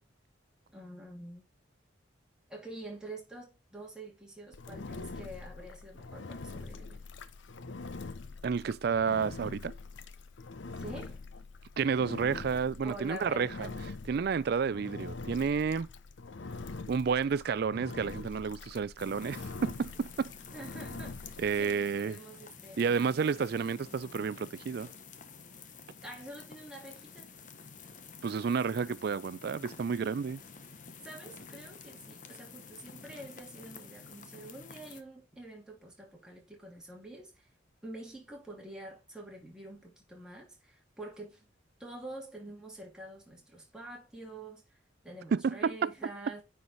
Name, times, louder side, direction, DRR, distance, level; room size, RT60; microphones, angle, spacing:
voice 1, 0.7-1.4 2.5-7.0 10.7-11.2 12.8-13.8 20.5-23.3 26.0-27.3 31.0-37.5 37.8-41.4 41.8-44.6 45.0-46.4, right 1 dB, 5° right, 2.6 m, -47 dB
Engine, 4.5-21.8, left 3 dB, 70° left, 0.7 m, -44 dB
voice 2, 8.4-9.7 11.8-13.7 14.1-15.9 16.9-20.3 21.4-22.2 22.8-24.9 28.2-30.4 45.3-45.7, right 6 dB, 55° right, 0.3 m, -30 dB
sound 1, 19.0-35.0, left 5 dB, 40° left, 0.9 m, -50 dB
9.6 x 4.7 x 4.0 m
head